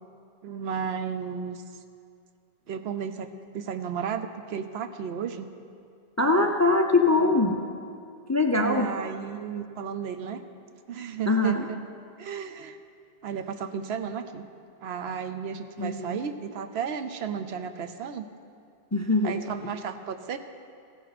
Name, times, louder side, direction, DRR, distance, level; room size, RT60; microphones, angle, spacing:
voice 1, 0.4-1.6 2.7-3.3 3.5-5.5 8.6-10.4 10.9-11.8 12.2-12.8 13.2-14.5 14.8-18.3 19.2-20.4, right 7 dB, 75° right, 8 dB, 0.9 m, -33 dB
voice 2, 6.2-7.6 8.3-8.9 11.3-11.6 15.8-16.2 18.9-19.3 19.6-19.7, left 2 dB, 25° left, 4 dB, 0.4 m, -22 dB
15.5 x 11.0 x 4.1 m, 2.4 s
omnidirectional pair, 1.1 m